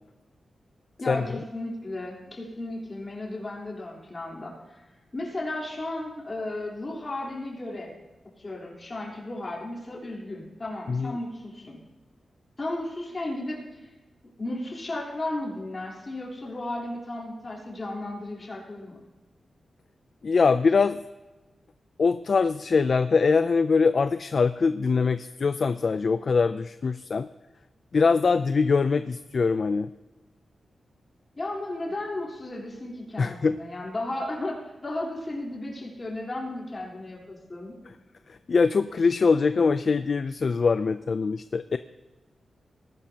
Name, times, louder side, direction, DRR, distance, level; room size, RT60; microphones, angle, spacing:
voice 1, 1.0-4.8 5.1-7.9 8.4-11.8 12.6-13.9 14.4-19.0 31.4-37.8, left 2 dB, 30° left, -4 dB, 3.7 m, -34 dB
voice 2, 20.2-21.0 22.0-27.3 27.9-29.9 33.2-33.6 38.3-41.8, left 4 dB, 50° left, 11 dB, 0.4 m, -23 dB
19.0 x 11.5 x 2.9 m, 1.1 s
wide cardioid pair, 135°, 0 cm